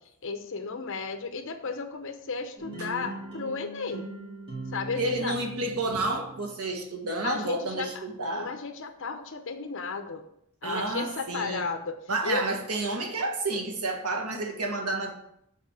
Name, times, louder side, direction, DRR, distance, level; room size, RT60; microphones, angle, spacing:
voice 1, 0.2-4.1 4.7-5.3 7.2-8.0 8.3-10.2 10.6-12.0 12.2-12.5, left 4 dB, 60° left, 7 dB, 0.8 m, -34 dB
sound 1, 2.6-6.5, right 2 dB, 25° right, 2.4 m, -40 dB
voice 2, 5.0-8.5 10.6-11.6 12.1-15.1, right 2 dB, 85° right, 3 dB, 1.4 m, -30 dB
6.9 x 4.2 x 5.9 m, 0.76 s
head